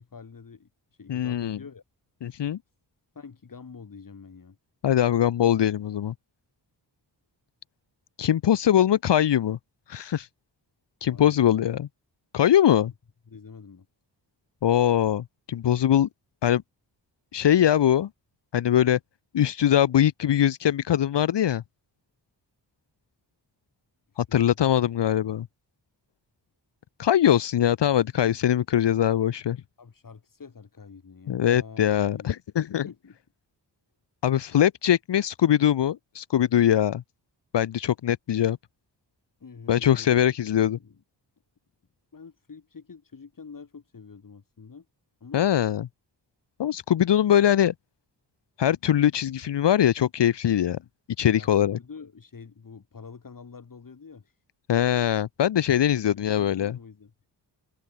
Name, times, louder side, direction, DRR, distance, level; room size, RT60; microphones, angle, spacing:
voice 1, 0.0-1.8 3.1-4.6 11.1-11.6 13.3-13.9 24.1-24.7 29.8-32.4 32.7-33.2 39.4-40.2 40.5-41.0 42.1-44.9 45.2-45.5 51.4-54.4 55.9-57.1, left 5 dB, 50° left, 4.3 m, -46 dB
voice 2, 1.1-1.6 2.2-2.6 4.8-6.1 8.2-9.6 9.9-10.3 11.0-11.9 12.3-12.9 14.6-16.1 16.4-16.6 17.3-18.1 18.5-19.0 19.3-21.6 24.2-25.5 27.0-29.6 31.3-32.9 34.2-37.0 37.5-38.6 39.7-40.8 45.3-45.9 46.6-47.7 48.6-50.8 51.2-51.8 54.7-56.8, left 10 dB, 75° left, 0.8 m, -22 dB
wide cardioid pair, 135°, 42 cm